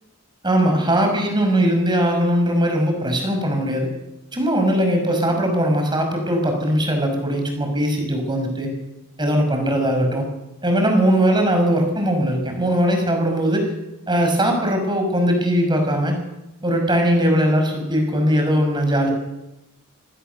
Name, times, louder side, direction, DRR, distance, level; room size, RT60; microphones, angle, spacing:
voice 1, 0.4-3.9 4.3-8.7 9.2-10.2 10.6-13.7 14.1-16.2 16.6-19.1, equal, 20° right, 4 dB, 5.5 m, -20 dB
24.5 x 17.0 x 6.8 m, 0.97 s
head